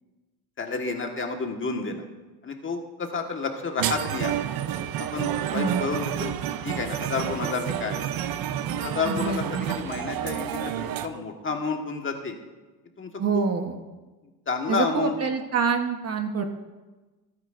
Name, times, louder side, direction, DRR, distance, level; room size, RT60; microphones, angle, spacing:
voice 1, 0.6-2.1 2.4-4.3 5.0-8.1 8.7-12.3 13.0-13.4 14.5-15.1, left 4 dB, 25° left, 3 dB, 1.6 m, -30 dB
sound 1, 3.8-11.1, right 10 dB, 50° right, 0.8 m, -30 dB
voice 2, 5.5-5.9 9.1-9.7 13.2-13.8 14.7-16.4, right 5 dB, 35° right, 5 dB, 1.2 m, -26 dB
26.0 x 9.5 x 2.6 m, 1.2 s
supercardioid pair, 100°, 44 cm